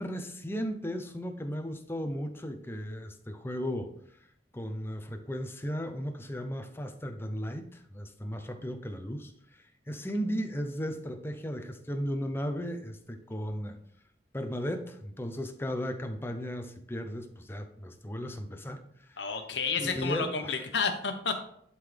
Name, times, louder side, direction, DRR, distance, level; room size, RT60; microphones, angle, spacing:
voice 1, 0.0-3.9 4.5-9.3 9.9-13.8 14.3-18.8 19.1-19.2 19.8-20.6, equal, 15° left, 6 dB, 0.7 m, -35 dB
voice 2, 19.2-21.4, left 5 dB, 80° left, 5 dB, 1.1 m, -31 dB
11.0 x 3.9 x 3.4 m, 0.69 s
head